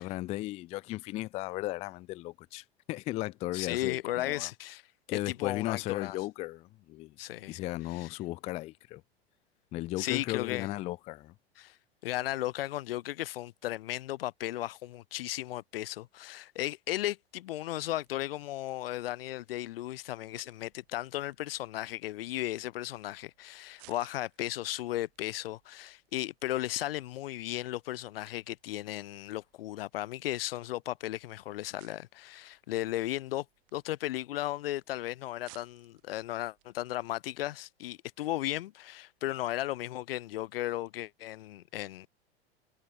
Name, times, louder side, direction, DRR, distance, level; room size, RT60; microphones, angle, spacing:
voice 1, 0.0-4.5 5.1-7.1 7.5-9.0 9.7-11.3, left 17 dB, 20° left, 0.3 m, -36 dB
voice 2, 3.5-4.8 5.1-6.2 7.2-7.6 7.9-8.1 10.0-10.7 11.6-11.8 12.0-33.4 33.7-42.1, left 15 dB, 60° left, 0.6 m, -35 dB
sound 1, 17.9-36.9, right 40 dB or more, 50° right, 6.9 m, -65 dB
figure-of-eight pair, 90°, 32 cm